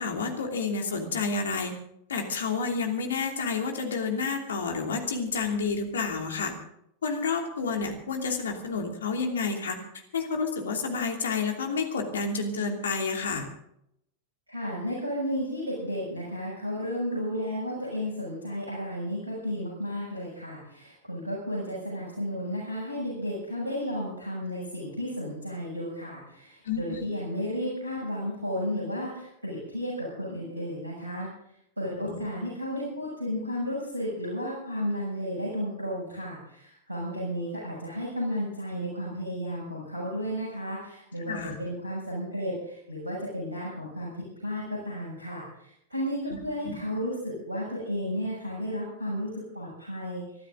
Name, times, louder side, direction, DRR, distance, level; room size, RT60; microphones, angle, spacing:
voice 1, 0.0-1.7 2.1-6.5 7.0-9.8 10.1-13.5 26.6-27.0 32.0-32.2 41.3-41.6 46.6-46.7, left 4 dB, 65° left, 3 dB, 2.9 m, -30 dB
voice 2, 14.5-31.3 31.8-50.2, equal, 80° right, -7 dB, 6.8 m, -33 dB
25.0 x 12.5 x 3.9 m, 0.76 s
figure-of-eight pair, 90°, 0 cm